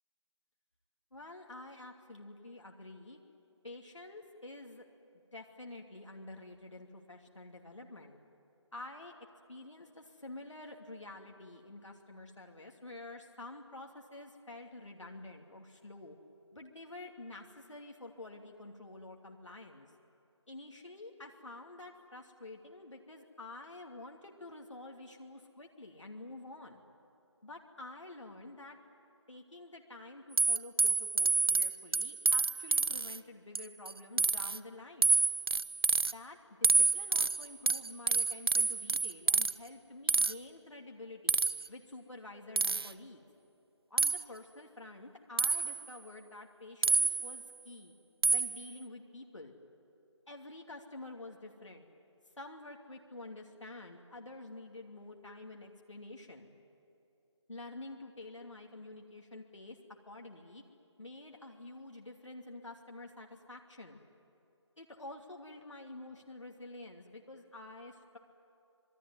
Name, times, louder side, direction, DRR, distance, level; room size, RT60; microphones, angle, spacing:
voice 1, 1.1-3.2 3.6-4.8 5.3-8.2 8.7-9.1 9.5-16.2 16.5-19.9 20.5-26.8 27.4-28.8 29.3-35.2 36.1-41.4 41.7-43.2 43.9-47.9 48.3-49.6 50.3-51.9 52.4-56.5 57.5-60.6 61.0-64.0 64.8-68.2, left 2 dB, 80° left, 1 dB, 2.6 m, -49 dB
sound 1, 30.4-33.2 33.5-33.9 34.2-34.6 35.0-36.1 36.6-39.5 40.1-40.3 41.3-41.7 42.6-42.9 44.0-44.2 45.4-45.8 46.8-47.4 48.2-48.6, right 4 dB, 55° right, 0.7 m, -28 dB
26.5 x 20.5 x 9.4 m, 2.7 s
figure-of-eight pair, 160°, 15 cm